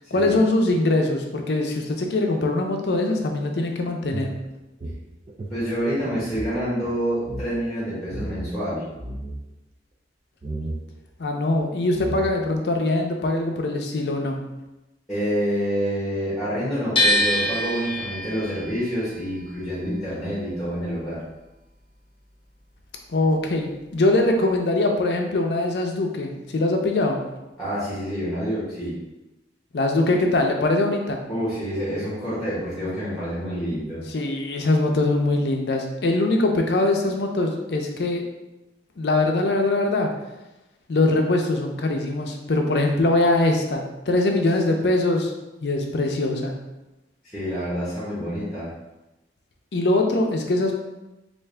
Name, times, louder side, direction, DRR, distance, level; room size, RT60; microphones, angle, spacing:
voice 1, 0.1-4.4 11.2-14.4 23.1-27.2 29.7-31.2 34.1-38.2 39.0-40.1 40.9-45.3 45.6-46.6 49.7-50.7, left 2 dB, 70° left, 3 dB, 0.5 m, -22 dB
sound 1, 4.1-6.6 6.8-6.9 7.2-7.5 8.1-8.5 8.9-9.4 10.4-10.8 11.6-11.7 11.9-12.5, right 1 dB, 35° right, 0.4 m, -33 dB
voice 2, 5.5-8.8 15.1-21.2 27.6-28.9 31.3-34.0 47.3-48.7, equal, ahead, -11 dB, 1.2 m, -27 dB
sound 2, 17.0-23.0 23.3-24.6, equal, 30° left, 0.7 m, -27 dB
3.5 x 2.5 x 3.3 m, 1.0 s
head